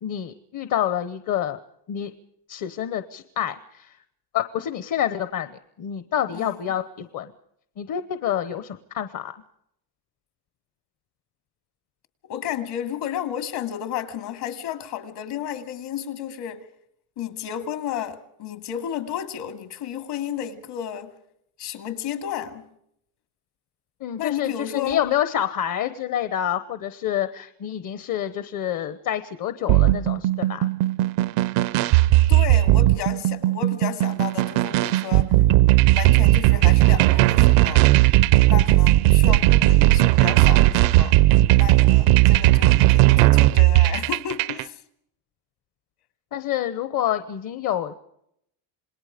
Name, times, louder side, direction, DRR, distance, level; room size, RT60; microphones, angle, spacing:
voice 1, 0.0-1.6 1.9-2.1 2.5-4.0 4.3-7.3 7.8-9.3 24.0-30.7 46.3-47.9, left 10 dB, 45° left, 1.1 m, -27 dB
voice 2, 12.3-16.6 17.2-21.2 21.6-22.6 24.2-25.0 32.3-35.4 35.9-37.9 38.5-41.2 41.5-44.8, left 10 dB, 65° left, 2.5 m, -32 dB
sound 1, 29.7-44.6, right 17 dB, 85° right, 0.7 m, -17 dB
28.0 x 20.0 x 5.1 m
cardioid pair, 155°, 43 cm